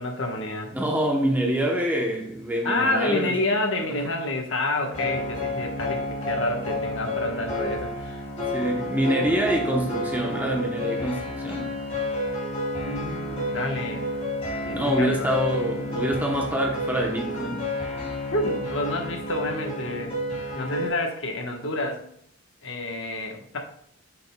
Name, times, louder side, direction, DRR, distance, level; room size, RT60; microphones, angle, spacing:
voice 1, 0.0-0.7 2.6-8.3 9.0-9.4 12.8-14.0 14.7-15.3 18.3-20.1 20.5-22.0 22.6-23.6, left 2 dB, 60° left, 1.1 m, -29 dB
voice 2, 0.7-3.3 8.5-11.7 14.7-17.6, right 1 dB, 10° right, 0.8 m, -26 dB
sound 1, 4.9-20.9, left 1 dB, 25° left, 2.5 m, -30 dB
7.6 x 6.5 x 2.2 m
head